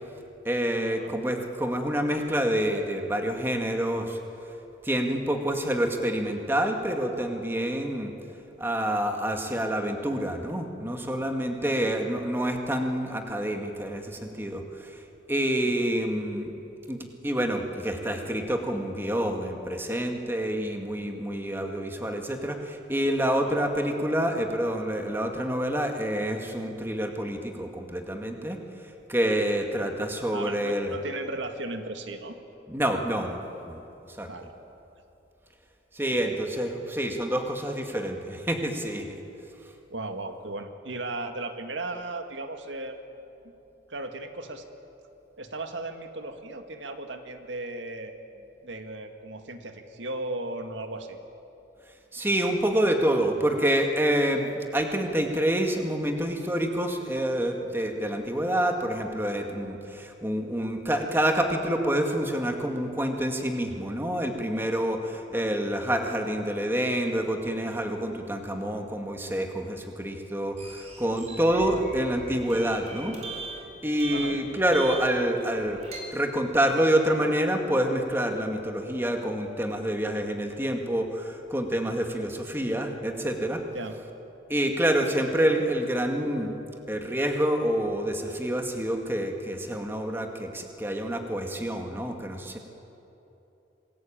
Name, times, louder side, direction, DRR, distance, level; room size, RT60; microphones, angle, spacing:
voice 1, 0.4-4.2 4.8-8.1 8.6-15.0 15.3-16.5 16.9-28.6 28.8-30.9 32.7-33.4 33.7-33.8 34.1-34.3 35.9-39.2 52.1-73.5 73.8-75.8 76.1-83.6 84.5-86.6 86.9-92.6, right 1 dB, 10° right, 3 dB, 2.0 m, -27 dB
voice 2, 11.6-11.9 15.6-16.0 23.4-23.6 30.3-32.4 34.2-34.6 36.1-36.4 39.9-43.0 43.9-44.6 45.4-48.1 48.6-51.2 65.3-65.6 71.7-71.9 74.1-74.4 83.7-84.0, right 2 dB, 85° right, 6 dB, 2.0 m, -36 dB
sound 1, 70.6-76.0, right 3 dB, 35° right, 4.0 m, -41 dB
27.0 x 20.5 x 8.8 m, 2.9 s
head